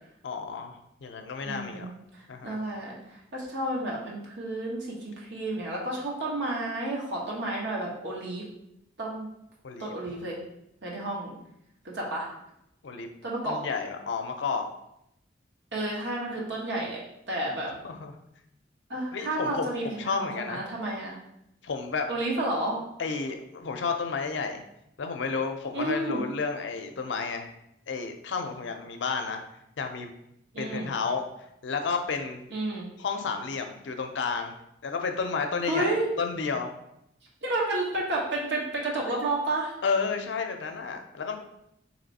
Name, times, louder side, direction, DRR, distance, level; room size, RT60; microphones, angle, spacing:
voice 1, 0.2-1.9 2.3-2.6 9.6-9.9 12.8-13.1 13.4-14.7 17.7-18.1 19.1-20.6 21.6-22.1 23.0-24.6 25.0-27.5 27.9-29.4 29.8-30.1 30.6-31.3 31.6-32.4 33.0-34.5 34.8-36.7 39.8-41.4, left 5 dB, 85° left, 5 dB, 0.5 m, -31 dB
voice 2, 1.4-8.4 9.0-9.3 9.8-10.4 10.8-11.4 11.8-12.3 13.2-13.6 15.7-17.0 17.3-17.7 18.9-21.2 22.1-22.8 25.7-26.2 30.5-30.9 32.5-32.9 35.6-36.1 37.4-39.7, right 1 dB, 80° right, -3 dB, 1.1 m, -31 dB
3.2 x 3.0 x 4.0 m, 0.80 s
head